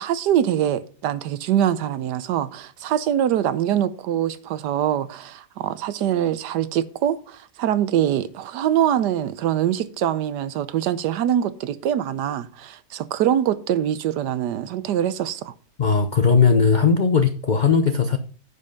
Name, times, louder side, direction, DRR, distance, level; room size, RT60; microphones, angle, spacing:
voice 1, 0.0-15.5, right 10 dB, 85° right, 1.3 m, -23 dB
voice 2, 15.8-18.2, left 5 dB, 60° left, 0.4 m, -18 dB
9.8 x 5.4 x 5.3 m
omnidirectional pair, 1.8 m